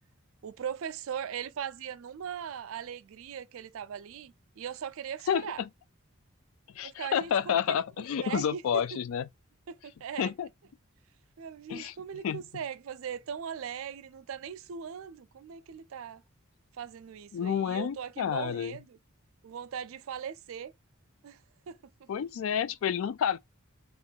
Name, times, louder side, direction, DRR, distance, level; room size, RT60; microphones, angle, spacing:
voice 1, 0.4-5.6 6.8-7.8 8.2-8.8 9.7-10.3 11.4-16.2 16.7-19.0 19.4-20.7 21.2-21.4 21.7-21.8, right 8 dB, 65° right, 0.4 m, -39 dB
voice 2, 5.3-5.7 6.7-9.2 10.2-10.5 11.7-11.9 12.2-12.4 17.3-18.8 22.1-23.4, left 8 dB, 70° left, 0.3 m, -29 dB
3.0 x 2.5 x 4.4 m
head